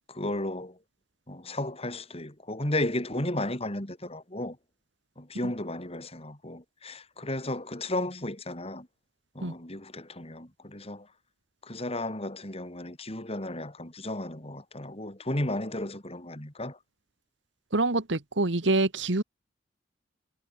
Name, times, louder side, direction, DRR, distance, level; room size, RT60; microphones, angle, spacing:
voice 1, 0.1-0.8 1.3-4.6 5.2-8.9 9.3-11.1 11.6-16.8, left 1 dB, 30° left, 4.4 m, -34 dB
voice 2, 17.7-19.2, right 2 dB, 70° right, 1.6 m, -26 dB
head